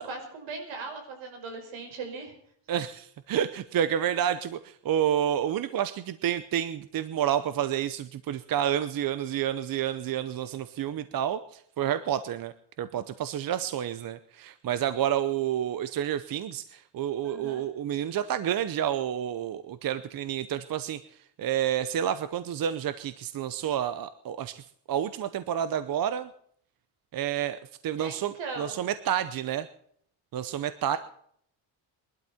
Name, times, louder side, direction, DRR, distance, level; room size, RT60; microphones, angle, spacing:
voice 1, 0.0-2.3 17.2-17.7 28.0-28.9, right 4 dB, 80° right, 4 dB, 5.5 m, -39 dB
voice 2, 2.7-21.0 21.4-24.6 24.9-26.3 27.1-29.7 30.3-31.0, right 10 dB, 50° right, 12 dB, 0.7 m, -29 dB
22.0 x 12.0 x 4.3 m, 0.65 s
cardioid pair, 155°, 46 cm